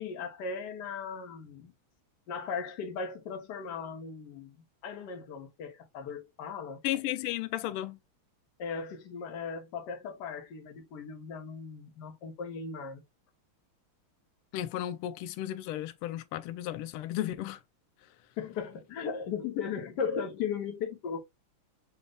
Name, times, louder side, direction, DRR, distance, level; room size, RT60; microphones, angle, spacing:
voice 1, 0.0-1.7 2.3-6.8 8.6-13.0 18.4-21.2, left 6 dB, 60° left, 1.4 m, -37 dB
voice 2, 6.8-8.0 14.5-17.6, left 13 dB, 85° left, 1.5 m, -34 dB
6.6 x 2.2 x 3.5 m
omnidirectional pair, 2.4 m